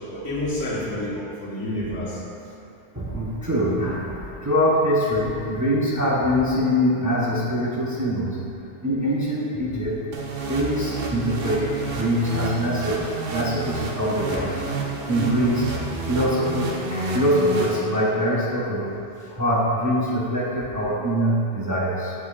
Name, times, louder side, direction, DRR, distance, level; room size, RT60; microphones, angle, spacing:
voice 1, 0.1-2.2 14.3-14.8, left 1 dB, 80° left, -6 dB, 1.6 m, -29 dB
voice 2, 2.9-8.5 8.8-10.0 10.5-14.6 15.0-15.7 16.1-18.9 19.3-22.1, equal, 20° right, -6 dB, 0.7 m, -23 dB
sound 1, 10.1-18.3, right 2 dB, 55° right, 0.8 m, -30 dB
8.5 x 6.1 x 2.4 m, 2.7 s
omnidirectional pair, 1.3 m